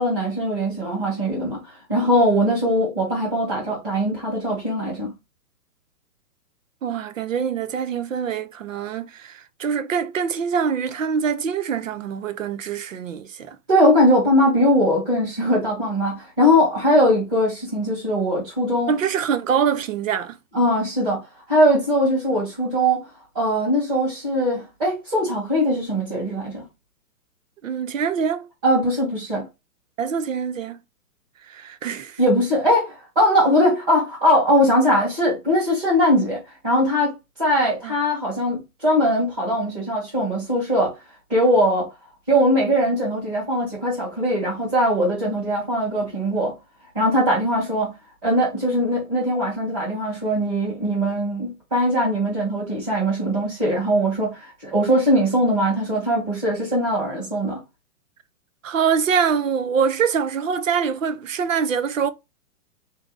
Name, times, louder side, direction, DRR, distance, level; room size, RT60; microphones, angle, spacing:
voice 1, 0.0-1.6 1.9-5.1 13.7-18.9 20.5-21.2 21.5-23.0 23.3-26.6 28.6-29.4 32.2-40.9 41.3-41.9 42.3-46.5 46.9-47.9 48.2-57.6, equal, 15° right, 1.1 m, -20 dB
voice 2, 6.8-13.6 18.9-20.4 27.6-28.5 30.0-30.8 31.4-32.2 37.8-37.9 58.6-62.1, right 7 dB, 55° right, 0.5 m, -24 dB
3.6 x 2.7 x 3.6 m
hypercardioid pair, 180°, 47 cm